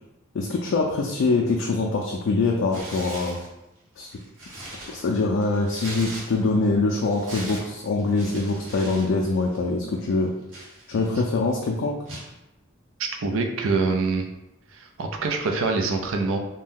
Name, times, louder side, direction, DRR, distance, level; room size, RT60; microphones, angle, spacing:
voice 1, 0.3-3.4 4.0-4.1 4.9-10.3 10.9-12.0, left 3 dB, 75° left, -1 dB, 0.3 m, -24 dB
Tearing, 2.7-3.5 4.0-6.6 6.9-9.1 9.3-9.6 10.1-11.3 12.1-12.3, right 1 dB, 70° right, 1.0 m, -39 dB
voice 2, 13.0-14.3 14.7-16.4, right 4 dB, 90° right, 3 dB, 0.4 m, -25 dB
2.6 x 2.2 x 3.5 m, 0.93 s
head